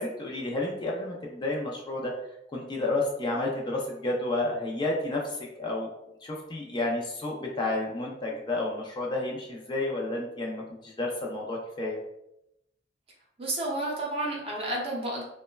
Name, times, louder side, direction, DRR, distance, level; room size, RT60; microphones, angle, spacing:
voice 1, 0.0-2.1 2.5-5.9 6.2-12.0, left 2 dB, 25° left, -2 dB, 0.3 m, -31 dB
voice 2, 13.4-15.2, right 1 dB, 30° right, -3 dB, 0.7 m, -31 dB
3.0 x 2.1 x 2.2 m, 0.82 s
head